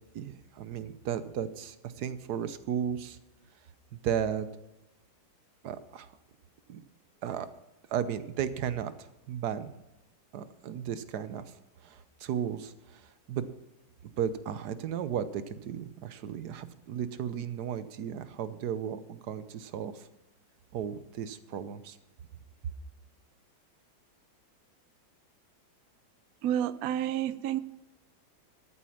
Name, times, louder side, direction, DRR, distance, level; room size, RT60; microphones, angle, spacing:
voice 1, 0.1-3.2 3.9-4.5 5.6-6.1 6.7-6.8 7.2-7.5 7.9-9.7 10.3-11.4 11.8-13.5 14.2-20.1 20.7-22.0, right 8 dB, 65° right, 13 dB, 1.3 m, -35 dB
voice 2, 26.4-27.6, right 11 dB, 80° right, 14 dB, 0.8 m, -29 dB
14.0 x 8.5 x 5.9 m, 0.98 s
omnidirectional pair, 2.1 m